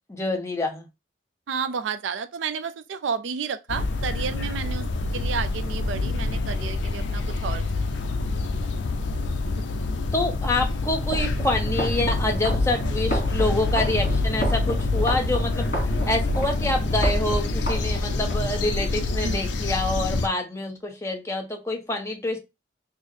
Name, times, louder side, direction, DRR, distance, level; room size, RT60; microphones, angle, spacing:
voice 1, 0.1-0.9 10.1-22.4, left 2 dB, 15° left, 0.7 m, -27 dB
voice 2, 1.5-4.8 5.1-7.6 9.6-9.7 19.2-19.5, right 6 dB, 85° right, 0.4 m, -31 dB
sound 1, 3.7-20.3, left 3 dB, 75° left, 0.5 m, -27 dB
sound 2, 11.0-18.4, equal, 55° left, 2.1 m, -30 dB
4.5 x 2.0 x 3.1 m
head